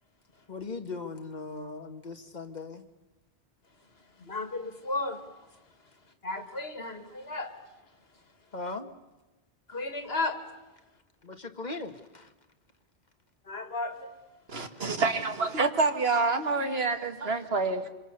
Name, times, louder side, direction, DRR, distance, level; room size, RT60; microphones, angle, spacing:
voice 1, 0.5-2.8 8.5-8.9 11.2-12.3 14.7-14.8, left 3 dB, 45° left, 7 dB, 1.8 m, -39 dB
voice 2, 4.2-5.2 6.2-7.5 9.7-10.4 13.4-14.1, left 2 dB, 75° left, 8 dB, 2.5 m, -34 dB
voice 3, 14.5-17.9, right 3 dB, 75° right, 8 dB, 1.9 m, -27 dB
26.0 x 26.0 x 6.7 m, 1.1 s
omnidirectional pair, 1.0 m